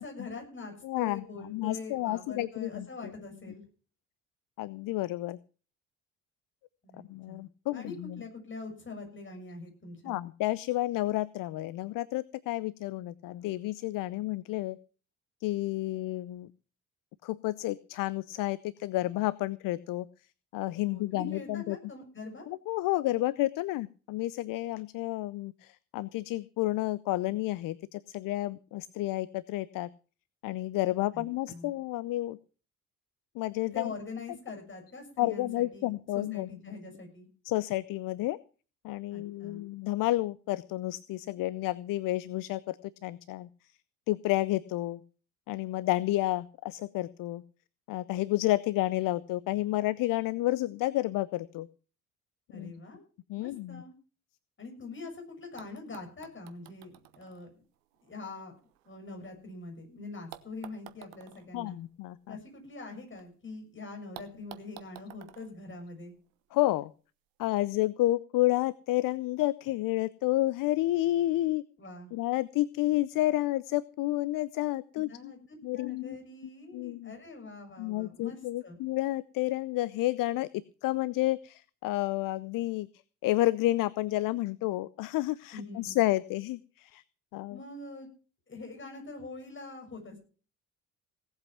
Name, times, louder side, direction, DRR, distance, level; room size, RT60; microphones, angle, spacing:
voice 1, 0.0-3.6 6.8-7.4 7.7-10.2 20.8-22.5 31.1-31.7 33.6-35.9 36.1-37.3 39.1-39.6 52.5-53.0 53.4-53.9 54.6-57.5 58.0-58.5 58.9-61.8 62.3-66.1 71.8-72.1 75.1-75.4 75.7-78.8 85.5-86.0 87.5-88.1 88.5-90.2, left 3 dB, 30° left, 4 dB, 6.9 m, -44 dB
voice 2, 0.8-2.9 4.6-5.4 7.1-8.2 10.0-14.8 15.4-16.5 17.2-20.1 20.5-21.8 22.5-29.9 30.4-32.4 33.3-33.9 35.2-36.8 37.4-38.4 38.8-43.5 44.1-45.0 45.5-47.4 47.9-51.7 52.5-52.7 53.3-53.8 61.5-62.4 66.5-66.9 67.4-71.6 72.1-75.3 75.6-76.2 76.7-77.1 77.8-82.9 83.2-87.0 87.3-87.6, left 17 dB, 55° left, 19 dB, 0.7 m, -30 dB
sound 1, 55.1-55.2 55.6-59.7 60.3-63.3 63.5-63.6 64.1-66.5 67.5-67.6, right 13 dB, 75° right, 1.1 m, -53 dB
17.5 x 8.1 x 5.9 m, 0.38 s
hypercardioid pair, 50°, 39 cm